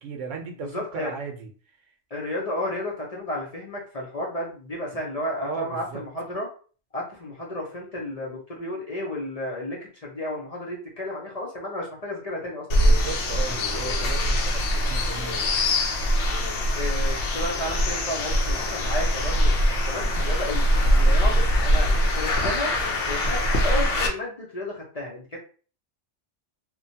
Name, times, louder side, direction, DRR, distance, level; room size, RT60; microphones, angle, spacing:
voice 1, 0.0-1.5 5.4-6.0 12.7-15.5 20.7-21.4 21.9-22.0, right 5 dB, 80° right, 4 dB, 1.0 m, -36 dB
voice 2, 0.6-1.1 2.1-6.5 6.9-12.7 16.7-20.6 21.0-21.9 22.2-22.7 23.1-25.2, left 1 dB, 40° left, -3 dB, 0.6 m, -32 dB
sound 1, 12.7-24.1, equal, 70° left, 1.0 m, -22 dB
2.9 x 2.1 x 2.7 m, 0.40 s
omnidirectional pair, 1.3 m